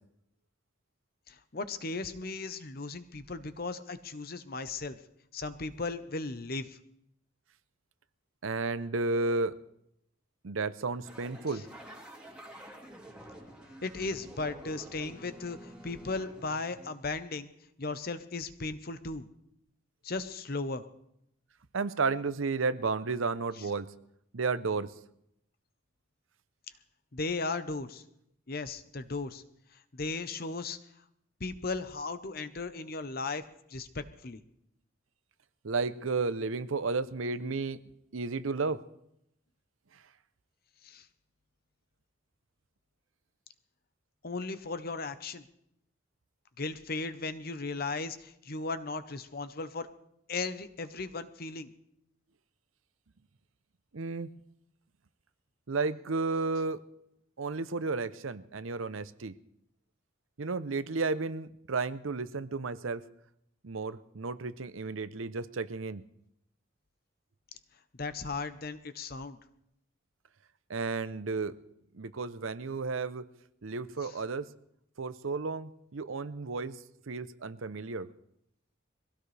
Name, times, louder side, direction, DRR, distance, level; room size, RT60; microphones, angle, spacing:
voice 1, 1.3-5.0 5.3-6.8 11.5-11.6 13.8-17.5 17.8-19.3 20.0-20.8 23.6-23.7 27.1-28.0 28.5-29.4 29.9-30.8 31.4-33.4 33.7-34.4 40.8-41.1 44.2-45.4 46.6-49.9 50.3-51.7 68.0-69.4 74.0-74.2, left 3 dB, 50° left, 11 dB, 0.9 m, -36 dB
voice 2, 8.4-9.6 10.4-11.6 21.7-23.9 24.3-24.9 35.6-37.8 38.1-38.8 53.9-54.3 55.7-56.8 57.4-59.3 60.4-63.0 63.6-66.0 70.7-71.5 71.9-73.3 73.6-74.5 75.0-76.8 77.1-78.1, right 4 dB, 85° right, 14 dB, 0.7 m, -32 dB
sound 1, 11.0-17.1, right 1 dB, 5° right, 2.3 m, -49 dB
22.5 x 16.5 x 3.4 m, 0.78 s
head